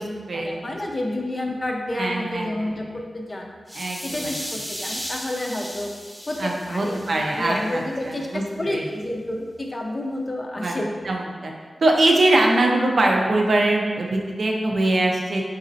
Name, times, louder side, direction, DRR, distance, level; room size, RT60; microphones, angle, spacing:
voice 1, 0.0-3.5 4.0-5.9 6.3-11.0, left 1 dB, 30° left, 1 dB, 0.5 m, -30 dB
voice 2, 2.0-2.7 3.7-4.3 6.4-8.4 8.7-8.8 10.6-10.8 11.0-11.5 11.8-15.4, right 2 dB, 60° right, 0 dB, 0.5 m, -22 dB
sound 1, 3.7-7.7, equal, 5° right, 0.9 m, -35 dB
4.0 x 3.9 x 2.6 m, 1.5 s
wide cardioid pair, 130°, 0 cm